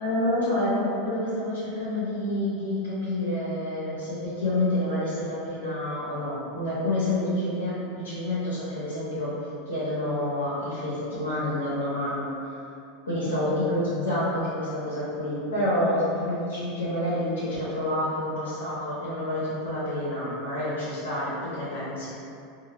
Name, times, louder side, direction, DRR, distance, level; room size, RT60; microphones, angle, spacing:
voice 1, 0.0-9.3 9.7-12.3 13.0-22.1, left 1 dB, 90° left, -11 dB, 0.9 m, -28 dB
2.7 x 2.3 x 2.9 m, 2.5 s
hypercardioid pair, 105°, 0 cm